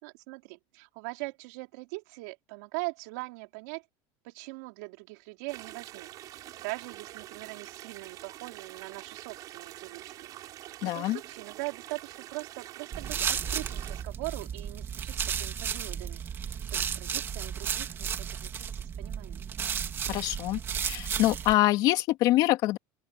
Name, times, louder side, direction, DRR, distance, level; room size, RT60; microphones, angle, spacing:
voice 1, 0.0-3.8 4.2-6.1 6.6-10.3 10.8-16.4 16.7-19.5, right 28 dB, 75° right, 5.2 m, -41 dB
sound 1, 5.5-14.0, right 14 dB, 45° right, 7.3 m, -45 dB
voice 2, 10.8-11.2 20.1-20.6 20.8-22.8, left 16 dB, 50° left, 2.9 m, -25 dB
sound 2, 12.9-21.5, right 8 dB, 25° right, 2.4 m, -33 dB
open air
cardioid pair, 155°, 9 cm